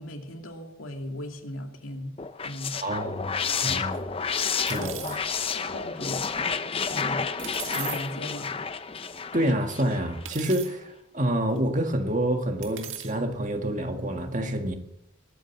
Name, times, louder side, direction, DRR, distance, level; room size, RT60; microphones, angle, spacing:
voice 1, 0.0-2.1 2.4-2.8 4.7-5.2 5.5-6.3 6.9-7.3 7.6-8.6, left 1 dB, 90° left, 3 dB, 2.5 m, -37 dB
sound 1, 2.2-10.2, left 5 dB, 25° left, 0.7 m, -30 dB
voice 2, 2.8-4.1 4.6-5.3 9.3-14.8, right 1 dB, 35° right, 5 dB, 1.7 m, -28 dB
sound 2, 3.9-4.0 4.7-5.2 7.4-8.0 9.0-9.1 10.2-10.7 11.6-11.7 12.6-13.1, right 10 dB, 70° right, 1.9 m, -38 dB
20.0 x 9.2 x 7.4 m, 0.85 s
head